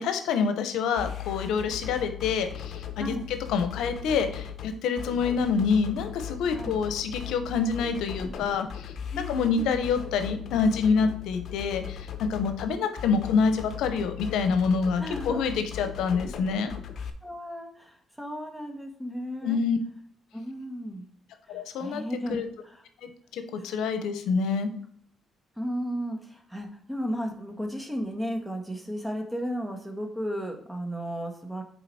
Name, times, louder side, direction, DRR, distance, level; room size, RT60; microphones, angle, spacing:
voice 1, 0.0-16.7 19.4-19.8 21.5-22.0 22.3-22.4 23.0-24.7, left 5 dB, 85° left, 8 dB, 0.8 m, -27 dB
sound 1, 1.0-17.1, left 9 dB, 60° left, 1.0 m, -38 dB
voice 2, 9.1-9.8 15.0-15.4 17.0-19.6 20.3-21.1 21.5-22.8 25.6-31.6, equal, 5° right, 4 dB, 1.5 m, -34 dB
6.7 x 4.7 x 4.2 m, 0.62 s
cardioid pair, 90°, 0 cm